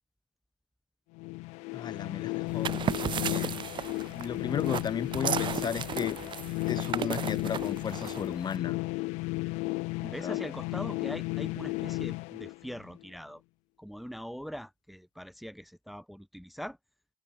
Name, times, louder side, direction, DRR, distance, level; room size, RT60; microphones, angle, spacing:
sound 1, 1.2-13.1, left 25 dB, 85° left, 0.7 m, -34 dB
voice 1, 1.7-3.5 4.1-6.2 6.7-8.8 10.2-10.4, left 7 dB, 40° left, 1.3 m, -35 dB
Kick pile of gravel, 2.5-8.6, right 9 dB, 45° right, 0.8 m, -35 dB
voice 2, 10.0-13.4 13.8-16.8, equal, ahead, 1.1 m, -42 dB
open air
cardioid pair, 105°, 11 cm